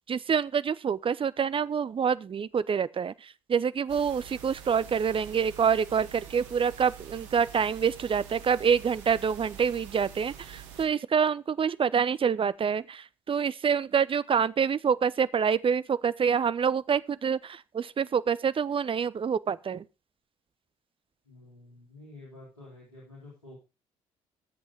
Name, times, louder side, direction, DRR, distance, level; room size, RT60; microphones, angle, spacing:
voice 1, 0.1-19.8, right 7 dB, 35° right, 0.7 m, -27 dB
sound 1, 3.9-10.9, right 9 dB, 75° right, 1.8 m, -46 dB
voice 2, 21.2-23.6, left 2 dB, 90° left, 4.1 m, -49 dB
14.0 x 8.1 x 4.9 m
figure-of-eight pair, 50°, 16 cm